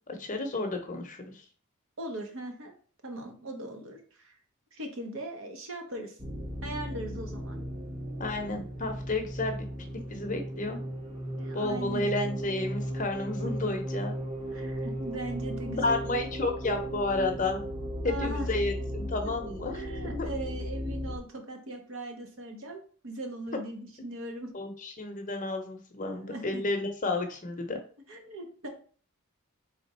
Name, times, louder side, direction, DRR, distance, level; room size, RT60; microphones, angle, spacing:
voice 1, 0.1-1.3 8.2-9.6 10.1-10.8 11.5-14.2 15.8-17.6 18.0-19.8 20.1-20.3 24.5-27.8, left 2 dB, 35° left, 4 dB, 0.7 m, -31 dB
voice 2, 2.0-2.7 3.0-4.4 4.7-6.1 6.6-7.6 11.3-12.0 14.5-15.9 18.0-18.5 19.7-24.5 26.0-26.6 28.1-28.7, right 1 dB, 60° right, 4 dB, 0.9 m, -39 dB
sound 1, 6.2-21.2, equal, 25° right, 0.8 m, -36 dB
3.7 x 3.3 x 4.2 m, 0.42 s
head